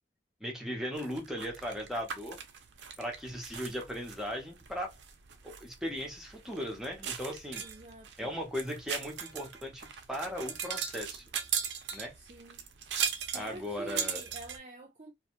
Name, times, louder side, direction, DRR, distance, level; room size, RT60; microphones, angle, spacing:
voice 1, 0.4-2.4 3.0-4.9 5.4-7.6 8.2-11.3 11.9-12.1 13.3-14.2, equal, 5° right, 0.7 m, -37 dB
sound 1, 1.0-14.6, right 7 dB, 85° right, 0.5 m, -39 dB
voice 2, 7.6-8.3 12.2-12.7 13.2-15.1, right 1 dB, 40° right, 0.5 m, -48 dB
2.6 x 2.3 x 2.9 m
head